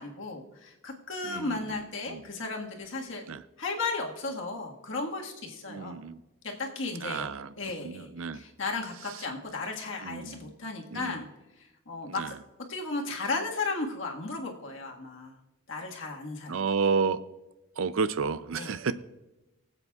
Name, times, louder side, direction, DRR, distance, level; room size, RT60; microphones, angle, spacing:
voice 1, 0.0-3.2 3.6-6.0 6.4-7.3 7.6-8.1 8.3-11.3 11.6-12.3 12.7-15.4 15.7-16.6 18.6-18.7, left 3 dB, 65° left, 1 dB, 1.6 m, -35 dB
voice 2, 1.2-1.8 2.1-2.2 3.3-3.4 5.7-6.2 7.0-7.5 7.8-8.4 10.0-10.5 10.9-11.2 12.0-12.4 16.5-17.2 17.8-18.9, right 5 dB, 70° right, 14 dB, 0.5 m, -31 dB
24.0 x 8.0 x 2.4 m, 1.0 s
head